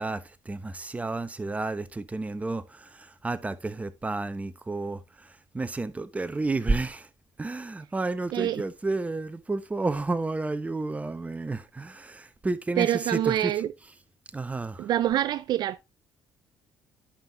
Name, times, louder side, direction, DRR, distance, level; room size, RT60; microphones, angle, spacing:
voice 1, 0.0-7.1 7.4-13.5 14.3-14.9, right 3 dB, 20° right, 0.9 m, -31 dB
voice 2, 8.3-8.6 12.8-13.7 14.8-15.8, right 12 dB, 65° right, 0.4 m, -26 dB
11.5 x 5.6 x 2.8 m
supercardioid pair, 75°, 8 cm